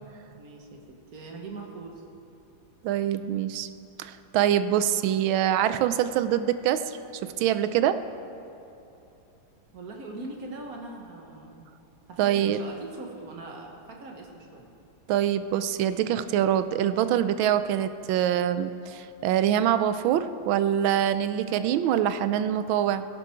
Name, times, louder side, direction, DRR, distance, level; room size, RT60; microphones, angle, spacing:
voice 1, 0.4-0.8 1.1-2.0 9.7-11.7 12.1-14.7, right 3 dB, 50° right, 1 dB, 1.7 m, -41 dB
voice 2, 2.8-3.7 4.0-8.0 12.2-12.6 15.1-23.1, right 10 dB, 85° right, 12 dB, 1.4 m, -25 dB
17.0 x 11.5 x 4.5 m, 2.9 s
omnidirectional pair, 2.1 m